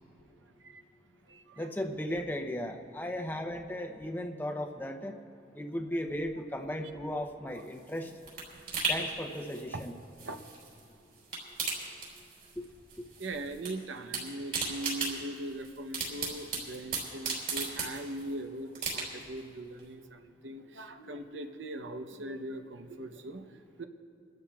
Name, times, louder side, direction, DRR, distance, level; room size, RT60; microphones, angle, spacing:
voice 1, 0.4-0.8 1.3-1.7 8.5-8.7 10.2-10.4 13.2-23.8, right 1 dB, 85° right, 7 dB, 0.8 m, -41 dB
voice 2, 1.6-5.2 5.5-8.1 8.9-10.0 12.6-12.7, left 1 dB, 10° left, 5 dB, 0.6 m, -36 dB
sound 1, 7.6-10.8 11.1-12.6 12.9-13.7 14.0-18.3 18.7-19.4 19.8-19.9, right 4 dB, 50° right, 4.1 m, -36 dB
28.5 x 13.0 x 2.4 m, 2.5 s
head